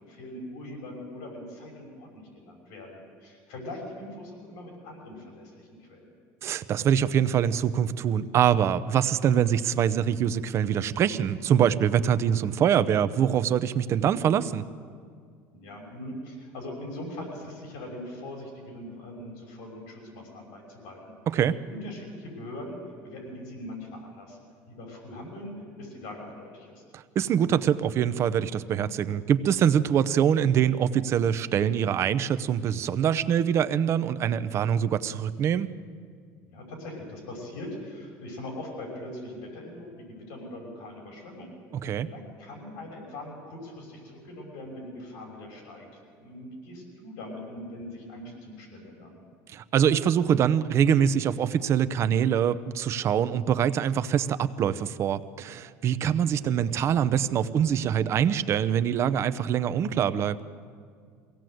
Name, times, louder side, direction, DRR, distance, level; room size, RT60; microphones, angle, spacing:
voice 1, 0.0-6.1 15.5-21.0 21.7-22.8 23.0-24.4 24.7-25.5 25.8-26.8 36.5-41.5 42.1-45.9 46.2-49.2, left 1 dB, 80° left, 1 dB, 5.9 m, -41 dB
voice 2, 6.4-14.7 21.3-21.6 26.9-35.7 41.7-42.1 49.5-60.4, right 9 dB, 40° right, 12 dB, 0.7 m, -24 dB
23.0 x 17.0 x 7.8 m, 2.1 s
cardioid pair, 135°, 7 cm